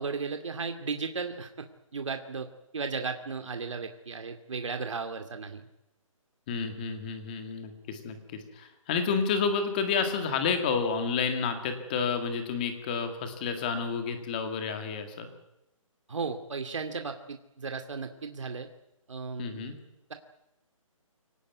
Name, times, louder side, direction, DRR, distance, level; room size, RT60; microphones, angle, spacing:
voice 1, 0.0-1.5 1.9-2.5 2.7-5.6 16.1-18.7 19.1-19.7, right 4 dB, 60° right, 6 dB, 2.4 m, -35 dB
voice 2, 6.5-15.3 19.4-19.8, left 5 dB, 15° left, 7 dB, 2.0 m, -30 dB
25.0 x 18.0 x 9.4 m, 0.89 s
hypercardioid pair, 175°, 18 cm